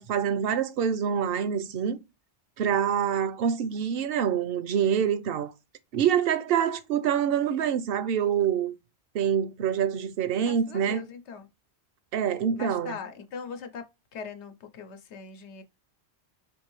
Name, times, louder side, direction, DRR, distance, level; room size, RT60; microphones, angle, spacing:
voice 1, 0.0-2.0 2.6-5.5 5.9-8.7 9.1-11.0 12.1-13.0, right 8 dB, 65° right, 0.7 m, -26 dB
voice 2, 10.3-11.5 12.5-15.6, left 6 dB, 85° left, 1.0 m, -41 dB
4.6 x 2.6 x 3.0 m
omnidirectional pair, 1.1 m